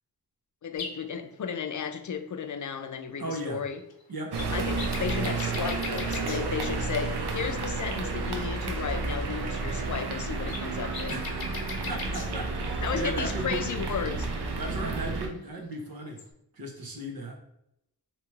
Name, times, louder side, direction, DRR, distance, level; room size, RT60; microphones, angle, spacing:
voice 1, 0.6-3.8 4.5-11.1 12.8-14.3, left 7 dB, 50° left, 7 dB, 0.5 m, -34 dB
sound 1, 0.8-1.0 3.8-3.9 4.2-6.4 8.5-8.6 8.8-8.9 9.2-9.3 9.9-12.3 15.7-15.8 16.0-16.2, left 4 dB, 75° left, 0.8 m, -39 dB
voice 2, 3.2-3.6 4.1-4.5 11.1-13.7 14.6-16.2 16.5-17.4, right 2 dB, 65° right, 1 dB, 1.0 m, -36 dB
sound 2, 4.3-15.3, right 3 dB, 90° right, 0.7 m, -31 dB
3.0 x 2.9 x 4.5 m, 0.79 s
wide cardioid pair, 90°, 38 cm